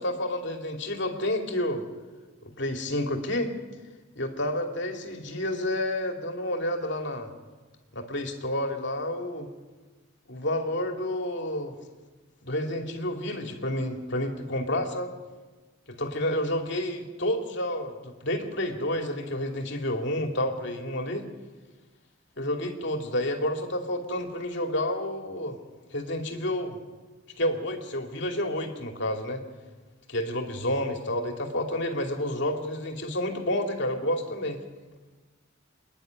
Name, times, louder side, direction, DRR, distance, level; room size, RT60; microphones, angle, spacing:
voice 1, 0.0-1.8 2.4-3.5 4.2-7.3 7.9-9.5 10.3-11.8 12.4-15.1 16.0-21.3 22.4-25.6 25.9-26.8 27.4-29.4 30.1-34.6, left 1 dB, 60° left, 3 dB, 2.6 m, -30 dB
27.0 x 10.5 x 9.5 m, 1.3 s
head